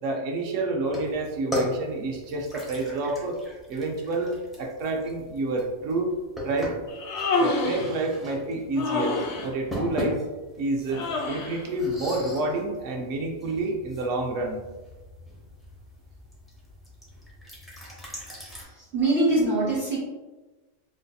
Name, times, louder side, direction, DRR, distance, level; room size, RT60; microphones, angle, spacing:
voice 1, 0.0-3.4 3.7-6.1 6.4-6.7 7.4-9.1 9.4-10.2 10.6-14.6, right 2 dB, 75° right, 1 dB, 0.9 m, -29 dB
sound 1, 0.8-18.6, left 1 dB, ahead, 0.7 m, -38 dB
Human voice, 6.9-7.9 8.8-9.5 10.9-11.6, left 3 dB, 70° left, 0.8 m, -27 dB
voice 2, 18.9-20.0, right 2 dB, 45° right, -10 dB, 1.2 m, -23 dB
4.0 x 2.6 x 2.3 m, 1.2 s
omnidirectional pair, 1.3 m